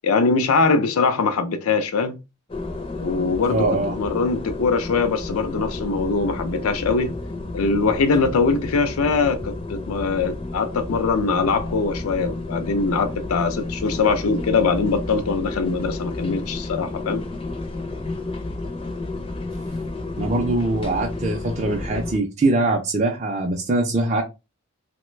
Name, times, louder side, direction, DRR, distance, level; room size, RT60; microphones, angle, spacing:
voice 1, 0.0-2.2 3.0-3.7 4.0-7.1 7.5-17.2, left 4 dB, 85° left, 0.4 m, -22 dB
sound 1, 2.5-22.2, left 2 dB, 25° left, 0.5 m, -31 dB
voice 2, 3.5-4.0 20.2-24.2, right 2 dB, 30° right, 0.4 m, -22 dB
3.1 x 2.1 x 3.1 m
head